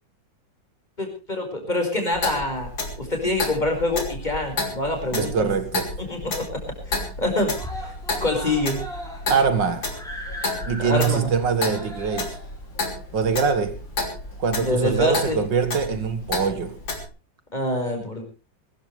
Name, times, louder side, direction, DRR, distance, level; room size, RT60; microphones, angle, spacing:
voice 1, 1.0-2.7 3.0-5.5 6.0-6.6 6.9-7.9 8.2-8.8 10.8-11.3 14.7-15.5 17.5-18.2, left 2 dB, 20° left, 5.6 m, -25 dB
Clock, 2.1-17.1, left 2 dB, 85° left, 4.2 m, -32 dB
Screaming, 5.1-5.5 5.9-6.0 6.3-6.4 6.7-7.2 7.5-14.3 15.2-15.3, equal, ahead, 5.4 m, -39 dB
voice 2, 5.1-5.9 9.3-9.9 10.6-12.4 13.1-13.8 14.4-16.8, right 6 dB, 70° right, 2.4 m, -23 dB
22.5 x 14.0 x 3.3 m
omnidirectional pair, 2.0 m